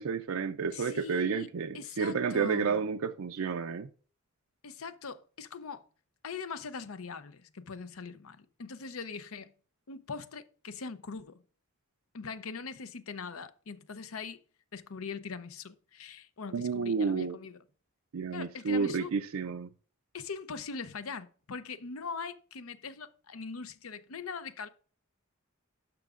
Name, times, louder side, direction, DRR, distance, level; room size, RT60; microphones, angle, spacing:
voice 1, 0.0-3.9 16.5-17.4 18.1-19.7, right 5 dB, 70° right, 0.5 m, -31 dB
voice 2, 0.7-1.5 1.7-2.8 4.6-5.9 6.2-9.5 9.9-11.4 12.1-14.4 14.7-17.6 18.3-19.1 20.1-24.7, left 5 dB, 75° left, 0.7 m, -41 dB
12.0 x 6.0 x 2.5 m
head